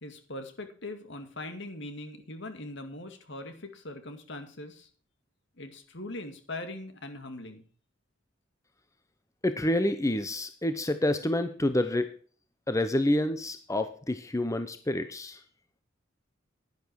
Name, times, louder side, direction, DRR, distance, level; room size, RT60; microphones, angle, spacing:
voice 1, 0.0-4.9 5.6-7.7, left 2 dB, 65° left, 7 dB, 2.2 m, -41 dB
voice 2, 9.4-12.1 12.7-15.4, left 1 dB, 15° left, 10 dB, 0.8 m, -28 dB
11.0 x 10.5 x 4.7 m, 0.42 s
head